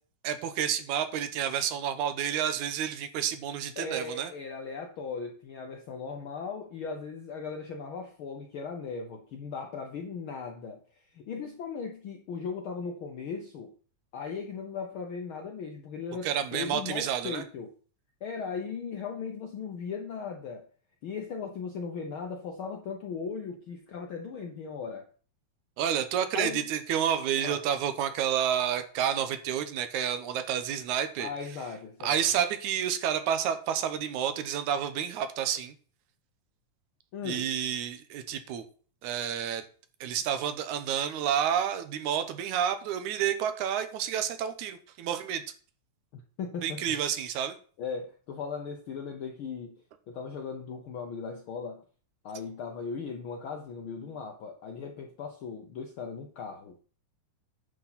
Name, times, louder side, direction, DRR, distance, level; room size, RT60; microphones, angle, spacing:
voice 1, 0.2-4.3 16.2-17.4 25.8-31.3 32.0-35.7 37.2-38.7 39.0-39.6 40.0-45.4 46.6-47.6, right 9 dB, 80° right, 9 dB, 2.2 m, -30 dB
voice 2, 3.8-10.8 11.1-13.7 14.1-17.7 18.2-20.6 21.0-25.1 26.3-26.6 27.4-27.6 31.2-32.2 37.1-37.5 46.1-47.0 47.8-49.7 50.1-51.8 52.2-56.8, left 5 dB, 70° left, 3 dB, 1.2 m, -38 dB
10.0 x 6.3 x 4.0 m, 0.42 s
omnidirectional pair, 3.4 m